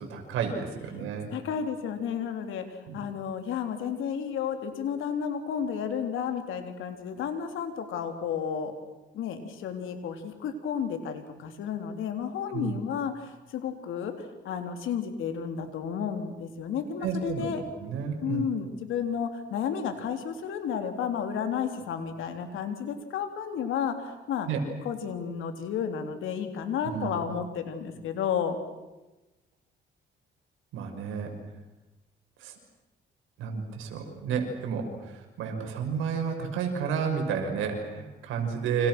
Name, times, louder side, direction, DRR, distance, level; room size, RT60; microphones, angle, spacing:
voice 1, 0.0-1.3 2.9-3.0 12.5-12.8 17.0-17.5 17.8-18.4 24.5-24.6 26.9-27.2 30.7-31.3 32.4-32.5 33.4-38.9, right 6 dB, 90° right, 3 dB, 6.0 m, -31 dB
voice 2, 1.3-8.7 9.1-14.1 14.4-17.6 18.2-24.5 24.8-28.6, left 7 dB, 85° left, 6 dB, 3.7 m, -32 dB
30.0 x 27.0 x 6.3 m, 1.1 s
cardioid pair, 90°, 20 cm